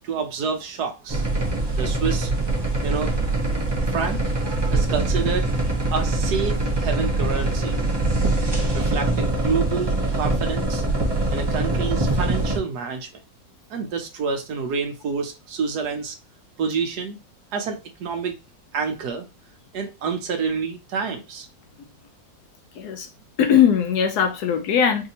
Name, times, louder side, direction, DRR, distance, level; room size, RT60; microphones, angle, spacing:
voice 1, 0.0-1.3 1.8-2.3 2.8-3.2 3.9-4.2 4.7-5.5 5.9-7.8 8.7-10.8 11.3-13.2 13.7-16.2 16.6-17.2 17.5-18.3 18.7-19.3 19.7-21.5, right 5 dB, 65° right, 1.2 m, -28 dB
sound 1, 1.1-12.6, right 2 dB, 30° right, 0.4 m, -23 dB
voice 2, 22.7-23.1 23.4-25.1, left 8 dB, 70° left, 1.0 m, -20 dB
4.9 x 2.7 x 2.7 m
omnidirectional pair, 2.0 m